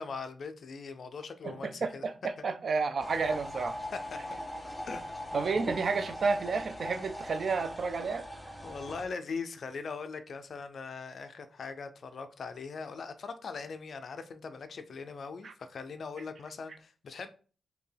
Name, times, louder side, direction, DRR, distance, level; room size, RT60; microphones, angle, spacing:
voice 1, 0.0-2.0 3.9-4.0 4.9-5.5 8.6-17.3, left 5 dB, 60° left, 0.4 m, -41 dB
voice 2, 1.4-3.8 5.3-8.3 15.4-15.5, right 4 dB, 55° right, 0.4 m, -31 dB
sound 1, 3.0-9.0, equal, ahead, 0.6 m, -40 dB
4.3 x 2.7 x 3.3 m
wide cardioid pair, 130°, 0 cm